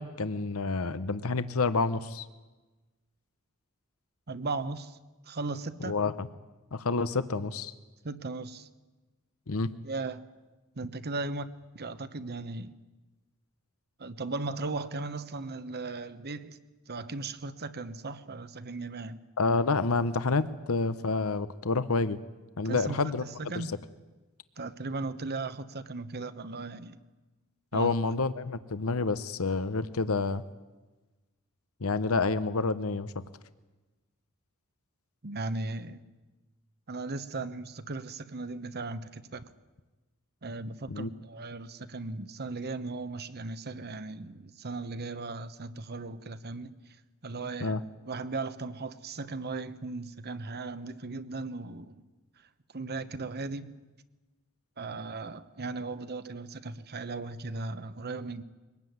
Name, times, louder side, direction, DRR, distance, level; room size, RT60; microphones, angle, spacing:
voice 1, 0.0-2.3 5.9-6.3 6.7-7.7 9.5-9.7 19.4-22.2 22.6-23.2 23.5-23.7 27.7-30.4 31.8-33.2 40.9-41.1 47.6-47.8, left 3 dB, 70° left, 0.9 m, -28 dB
voice 2, 4.3-5.0 5.3-5.9 8.0-8.7 9.8-10.3 10.8-12.7 14.0-16.6 16.9-19.2 22.6-23.1 23.4-23.7 24.6-27.0 27.7-27.9 35.2-36.0 36.9-39.5 40.4-47.0 47.2-52.0 52.7-53.7 54.8-58.4, right 3 dB, 50° right, 1.1 m, -37 dB
23.5 x 19.0 x 9.4 m
head